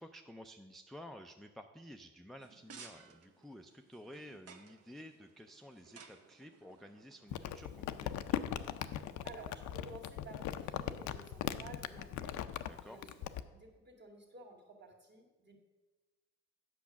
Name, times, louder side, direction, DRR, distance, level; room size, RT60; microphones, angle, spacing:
voice 1, 0.0-8.4 12.7-13.0, equal, ahead, 6 dB, 0.4 m, -52 dB
sound 1, 2.4-7.9, right 5 dB, 55° right, 0.9 m, -58 dB
Crumpling crinkling, 7.3-13.4, left 11 dB, 75° left, 0.5 m, -39 dB
voice 2, 8.9-13.1 13.5-15.6, right 2 dB, 35° right, 1 dB, 2.0 m, -53 dB
8.3 x 6.2 x 5.8 m, 1.2 s
cardioid pair, 90°, 30 cm